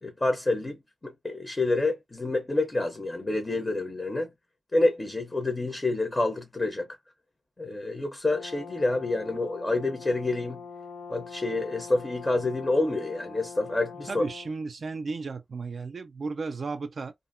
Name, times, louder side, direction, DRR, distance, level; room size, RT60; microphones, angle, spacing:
voice 1, 0.0-0.8 1.0-4.3 4.7-6.9 7.6-10.6 11.1-14.3, left 2 dB, 25° left, 0.6 m, -28 dB
Brass instrument, 8.3-14.5, left 5 dB, 65° left, 0.8 m, -43 dB
voice 2, 14.1-17.1, right 4 dB, 60° right, 0.3 m, -34 dB
2.8 x 2.5 x 2.4 m
wide cardioid pair, 110°, 0 cm